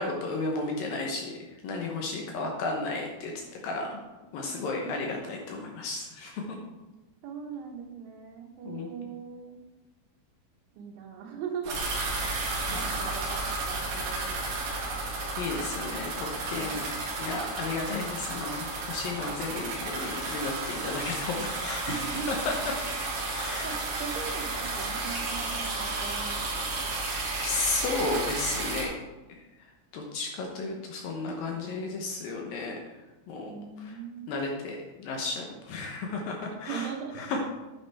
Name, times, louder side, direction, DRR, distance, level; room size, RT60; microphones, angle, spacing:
voice 1, 0.0-1.3 1.6-3.3 3.6-4.0 4.3-6.6 8.7-8.9 12.7-12.9 15.4-16.9 17.2-22.5 23.3-23.7 26.8-29.0 29.6-29.7 29.9-32.8 33.3-33.5 33.8-34.0 34.3-37.4, left 3 dB, 75° left, 1 dB, 2.2 m, -33 dB
voice 2, 4.4-4.9 7.2-9.6 10.8-11.8 12.2-12.4 12.7-14.4 16.6-16.8 21.9-22.4 23.2-26.8 33.5-34.4 36.7-37.3, right 6 dB, 85° right, 1 dB, 3.8 m, -40 dB
sound 1, 11.6-28.8, right 3 dB, 55° right, 3.7 m, -32 dB
9.7 x 9.6 x 3.5 m, 1.1 s
omnidirectional pair, 5.3 m